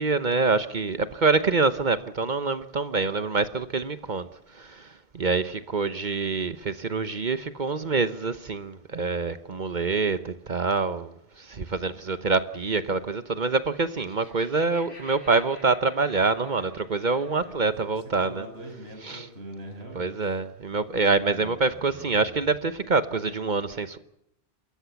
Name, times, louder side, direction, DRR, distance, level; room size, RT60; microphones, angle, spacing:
voice 1, 0.0-4.3 4.6-4.9 5.1-11.1 11.4-18.4 19.1-19.2 20.0-24.0, right 4 dB, 50° right, 1.1 m, -26 dB
voice 2, 11.8-12.3 17.4-20.4 21.3-22.6, right 1 dB, 80° right, 6.3 m, -44 dB
Laughter, 13.8-17.5, left 2 dB, 90° left, 5.1 m, -51 dB
28.0 x 14.0 x 7.1 m
omnidirectional pair, 1.1 m